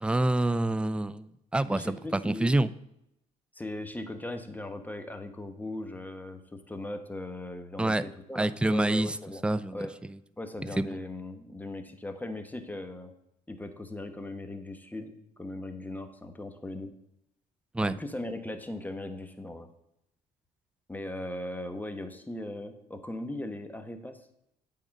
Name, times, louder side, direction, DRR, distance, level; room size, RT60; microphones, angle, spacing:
voice 1, 0.0-2.0 2.2-2.7 7.8-8.0 8.4-9.2 9.4-9.8 10.8-11.0 17.7-18.0, right 2 dB, 5° right, 15 dB, 0.4 m, -27 dB
voice 2, 1.7-2.6 3.5-9.4 9.7-10.0 10.4-13.1 13.5-15.1 15.4-16.9 17.8-19.7 20.9-24.2, left 1 dB, 10° left, 7 dB, 1.1 m, -38 dB
8.4 x 3.8 x 5.3 m, 0.80 s
supercardioid pair, 65°, 17 cm